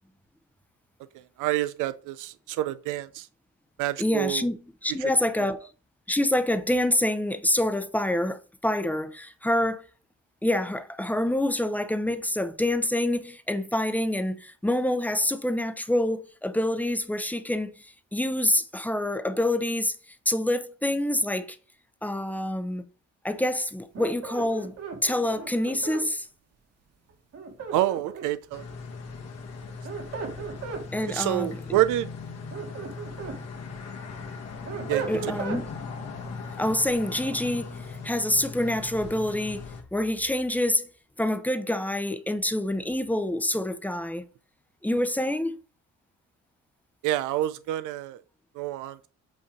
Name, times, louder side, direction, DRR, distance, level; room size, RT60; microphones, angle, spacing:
voice 1, 1.1-3.3 3.8-4.5 5.0-5.1 5.4-5.5 27.7-28.6 31.0-32.1 34.9-35.3 47.0-48.2 48.6-49.1, right 14 dB, 85° right, 0.5 m, -28 dB
voice 2, 4.0-5.7 6.1-9.8 10.4-17.7 18.1-20.0 20.3-21.5 22.0-22.8 23.2-24.7 25.0-26.3 30.9-31.8 35.1-35.8 36.6-39.6 39.9-40.9 41.2-44.2 44.8-45.6, left 1 dB, 5° left, 0.6 m, -26 dB
sound 1, 23.9-26.1 27.3-28.4 29.6-30.9 32.3-33.4 33.9-35.6, right 6 dB, 55° right, 1.6 m, -36 dB
sound 2, 28.5-39.8, left 4 dB, 55° left, 1.5 m, -39 dB
8.1 x 2.8 x 5.0 m
cardioid pair, 90°, 30 cm